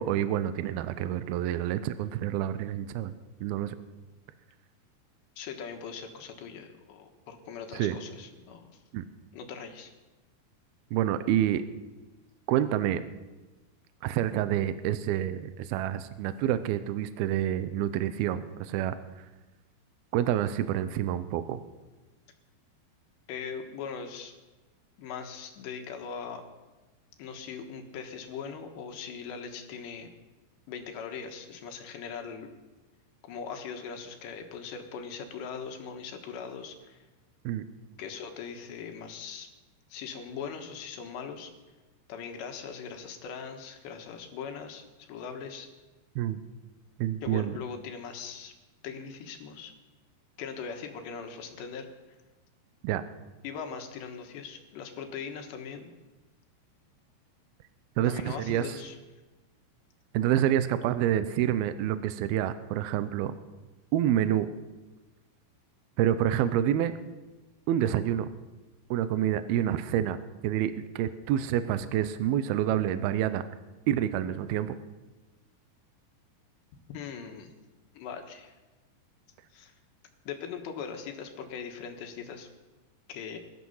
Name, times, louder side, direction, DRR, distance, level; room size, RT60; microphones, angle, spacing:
voice 1, 0.0-3.1 3.4-3.8 7.7-8.0 8.9-9.0 10.9-11.6 12.5-13.0 14.0-19.0 20.1-21.6 37.5-37.6 46.2-46.4 47.0-47.5 52.8-53.0 58.0-58.8 60.1-63.3 63.9-64.5 66.0-66.9 67.7-68.3 68.9-70.2 70.4-73.4 73.9-74.8, right 11 dB, 80° right, 12 dB, 2.2 m, -28 dB
voice 2, 5.4-8.8 9.3-9.9 23.3-24.3 25.0-26.4 27.2-30.1 30.7-32.5 33.2-37.1 38.0-39.5 39.9-41.5 42.1-45.7 47.2-48.5 48.8-49.7 50.4-51.9 53.4-55.9 58.1-59.0 76.9-77.5 78.0-78.6 79.5-79.7 80.3-82.5 83.1-83.4, left 6 dB, 75° left, 5 dB, 3.5 m, -40 dB
20.5 x 12.5 x 5.6 m, 1.1 s
omnidirectional pair, 5.2 m